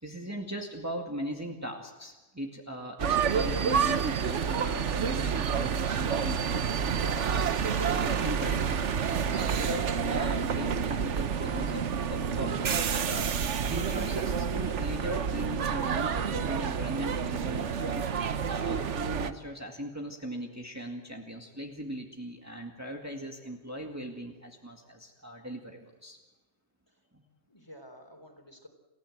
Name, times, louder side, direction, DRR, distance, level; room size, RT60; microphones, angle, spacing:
voice 1, 0.0-8.8 9.3-12.7 13.1-13.3 13.7-18.1 18.4-26.2 27.1-27.2, equal, 15° right, 1 dB, 2.1 m, -39 dB
sound 1, 3.0-19.3, right 7 dB, 75° right, 1.3 m, -29 dB
voice 2, 11.0-11.4 26.9-27.0 27.5-28.7, equal, 20° left, 5 dB, 3.7 m, -52 dB
29.0 x 16.0 x 7.9 m, 1.2 s
omnidirectional pair, 1.2 m